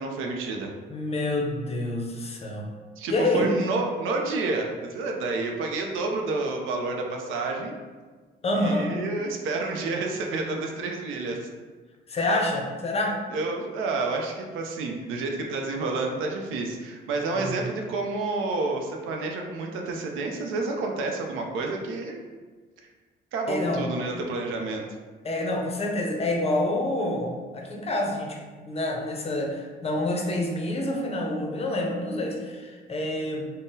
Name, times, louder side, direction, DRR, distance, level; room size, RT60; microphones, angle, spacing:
voice 1, 0.0-0.7 3.0-7.7 8.5-11.5 12.2-12.3 13.3-22.2 23.3-24.8, right 3 dB, 85° right, 2 dB, 0.5 m, -29 dB
voice 2, 0.9-2.7 3.1-3.5 8.4-8.9 12.1-13.2 17.3-17.6 23.5-23.9 25.2-33.4, left 1 dB, 30° left, 1 dB, 0.5 m, -27 dB
3.6 x 2.0 x 2.6 m, 1.4 s
cardioid pair, 90°, 20 cm